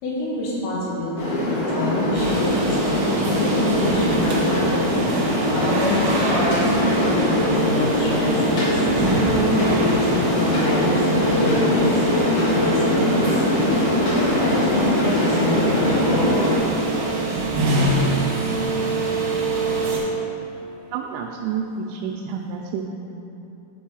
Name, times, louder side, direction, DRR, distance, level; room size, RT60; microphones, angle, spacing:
voice 1, 0.0-4.8 5.2-8.6 9.8-13.3 14.0-16.2, left 2 dB, 90° left, -5 dB, 4.0 m, -27 dB
sound 1, 1.2-16.6, left 1 dB, 70° left, 1.3 m, -22 dB
sound 2, 2.1-20.0, right 2 dB, 65° right, 2.1 m, -24 dB
voice 2, 20.9-22.8, right 6 dB, 85° right, 0 dB, 3.1 m, -29 dB
9.9 x 4.6 x 4.7 m, 2.9 s
omnidirectional pair, 5.7 m